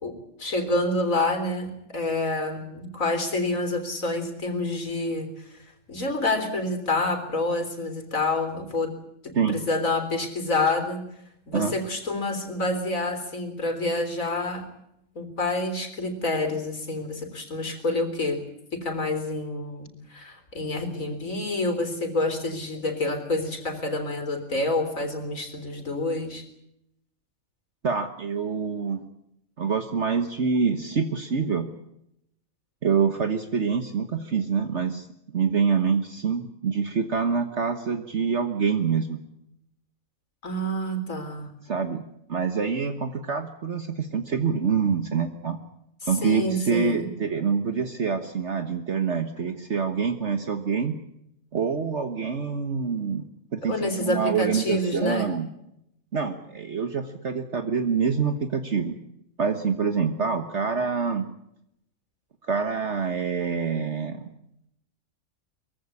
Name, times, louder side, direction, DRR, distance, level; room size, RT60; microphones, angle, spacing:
voice 1, 0.0-5.6 5.9-8.9 9.2-11.1 11.5-14.7 15.1-18.4 18.7-26.4 40.4-41.5 46.2-47.1 53.6-55.3, left 2 dB, 70° left, 8 dB, 4.0 m, -28 dB
voice 2, 27.8-29.0 29.6-31.7 32.8-35.1 35.3-39.2 41.6-42.0 42.3-45.6 46.1-51.0 51.5-53.2 53.5-55.5 56.1-59.0 59.4-61.3 62.4-64.2, right 6 dB, 55° right, 7 dB, 1.6 m, -26 dB
23.0 x 16.0 x 9.8 m, 0.80 s
omnidirectional pair, 1.5 m